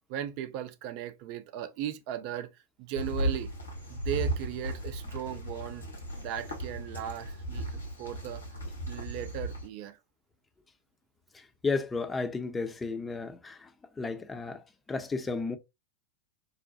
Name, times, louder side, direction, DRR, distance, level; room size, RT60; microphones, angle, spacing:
voice 1, 0.1-2.5 2.8-3.5 3.9-5.9 6.1-8.4 8.9-10.0, right 10 dB, 45° right, 0.5 m, -37 dB
sound 1, 2.9-9.7, right 1 dB, 75° left, 1.3 m, -36 dB
voice 2, 11.3-13.7 14.0-15.6, left 4 dB, 15° left, 0.7 m, -33 dB
5.5 x 2.2 x 2.6 m
figure-of-eight pair, 90°, 0 cm